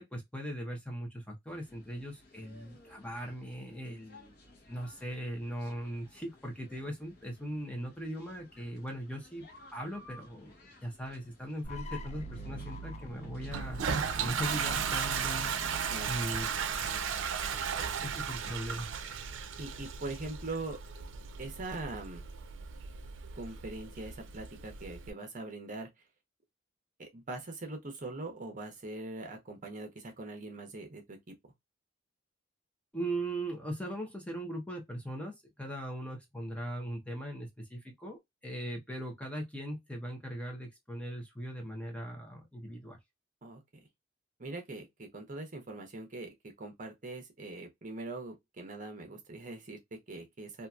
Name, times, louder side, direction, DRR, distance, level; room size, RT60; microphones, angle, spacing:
voice 1, 0.0-4.4 4.7-9.4 9.7-13.8 14.2-16.5 18.0-18.9 32.9-43.0, right 1 dB, 5° left, 0.7 m, -39 dB
sound 1, 1.5-14.5, left 1 dB, 55° left, 0.9 m, -58 dB
sound 2, 11.6-17.6, right 2 dB, 35° left, 0.4 m, -44 dB
Toilet flush, 13.5-25.1, right 7 dB, 85° right, 0.5 m, -36 dB
voice 2, 19.6-20.8 21.4-22.2 23.3-25.9 27.0-31.2 43.4-43.6 44.4-50.7, right 2 dB, 45° right, 0.9 m, -42 dB
2.8 x 2.5 x 2.3 m
head